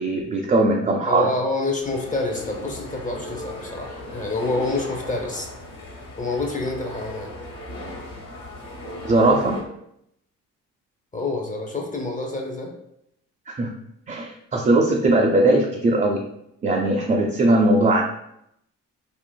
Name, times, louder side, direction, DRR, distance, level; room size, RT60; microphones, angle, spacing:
voice 1, 0.0-1.3 9.0-9.6 13.5-13.7 14.1-16.2 16.6-18.0, right 2 dB, 25° right, 0 dB, 0.4 m, -19 dB
voice 2, 1.0-5.5 6.1-7.3 11.1-12.7, left 2 dB, 25° left, 1 dB, 0.6 m, -27 dB
sound 1, 1.8-9.6, left 1 dB, 75° left, 1.1 m, -36 dB
3.8 x 2.4 x 2.2 m, 0.78 s
cardioid pair, 75°, 33 cm